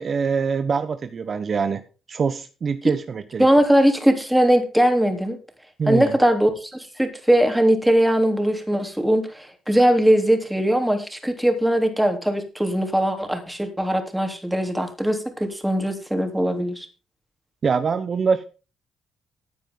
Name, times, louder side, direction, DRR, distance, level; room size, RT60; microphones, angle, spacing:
voice 1, 0.0-1.8 2.1-3.5 5.8-6.1 17.6-18.4, right 5 dB, 45° right, 10 dB, 1.0 m, -24 dB
voice 2, 3.4-5.4 5.9-6.7 7.0-16.9, equal, 5° right, 5 dB, 3.5 m, -20 dB
15.0 x 9.1 x 3.9 m, 0.33 s
cardioid pair, 90°, 0 cm